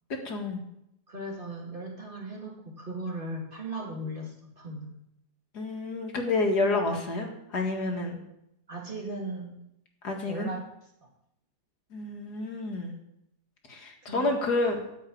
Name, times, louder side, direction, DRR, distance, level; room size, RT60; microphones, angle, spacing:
voice 1, 0.2-0.6 5.5-8.2 10.0-10.5 11.9-13.0 13.7-14.9, left 2 dB, 75° left, 2 dB, 2.4 m, -29 dB
voice 2, 1.1-4.9 8.7-9.5 10.3-10.6 11.0-11.1 14.0-14.4, right 1 dB, 30° right, -2 dB, 2.5 m, -37 dB
13.5 x 5.6 x 8.6 m, 0.81 s
omnidirectional pair, 1.8 m